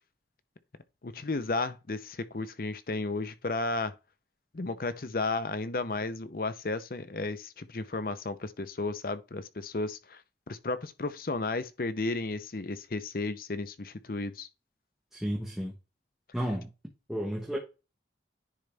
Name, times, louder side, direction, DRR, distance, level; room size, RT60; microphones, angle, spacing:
voice 1, 1.0-3.9 4.5-10.2 10.5-14.5, left 3 dB, 55° left, 0.7 m, -33 dB
voice 2, 15.1-15.7 16.3-16.7 17.1-17.6, equal, ahead, 1.3 m, -32 dB
10.0 x 4.0 x 3.4 m
head